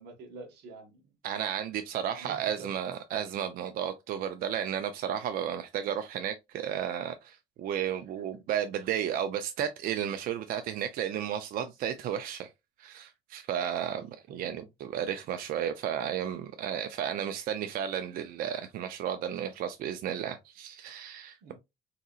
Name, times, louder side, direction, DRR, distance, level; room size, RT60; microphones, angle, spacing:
voice 1, 0.0-1.1 2.1-2.7 14.3-14.7 21.4-21.5, right 3 dB, 85° right, 0.9 m, -47 dB
voice 2, 1.2-12.5 12.8-21.5, right 9 dB, 60° right, 0.4 m, -33 dB
3.7 x 2.8 x 2.3 m
cardioid pair, 125°, 17 cm